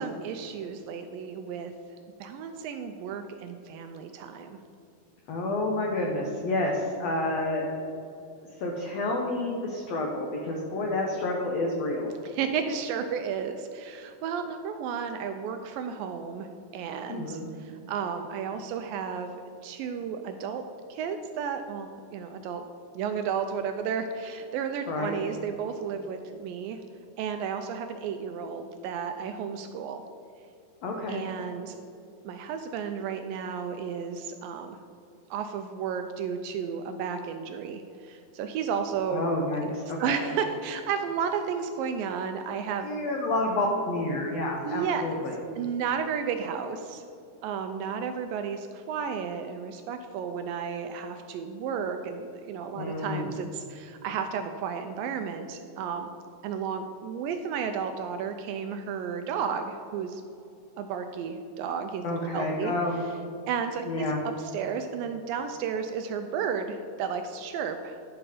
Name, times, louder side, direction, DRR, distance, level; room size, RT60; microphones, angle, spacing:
voice 1, 0.0-1.7 2.2-4.6 12.2-16.5 16.7-19.3 19.6-20.6 20.9-22.7 23.0-26.8 27.2-30.0 31.1-31.8 32.3-34.8 35.3-39.2 40.0-42.9 44.6-45.1 45.6-47.0 47.4-56.1 56.4-60.2 60.8-62.0 62.3-62.7 63.5-64.1 64.4-68.0, right 7 dB, 80° right, 7 dB, 2.0 m, -33 dB
voice 2, 5.3-7.7 8.6-12.1 17.1-17.4 24.9-25.1 30.8-31.3 39.1-40.2 42.8-45.3 52.7-53.3 62.0-63.0 63.9-64.2, left 2 dB, 90° left, 0 dB, 1.4 m, -29 dB
12.0 x 5.9 x 4.9 m, 2.7 s
omnidirectional pair, 4.4 m